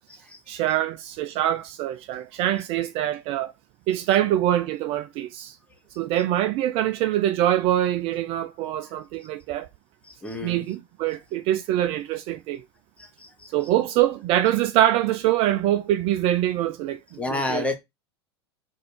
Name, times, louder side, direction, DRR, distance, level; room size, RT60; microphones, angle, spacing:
voice 1, 0.5-3.5 3.9-5.6 6.0-9.7 10.4-12.6 13.5-17.7, right 13 dB, 40° right, 0.4 m, -24 dB
voice 2, 10.2-10.6 13.0-13.5 17.2-17.7, left 2 dB, 10° left, 1.1 m, -30 dB
3.3 x 2.6 x 4.3 m
figure-of-eight pair, 85°, 14 cm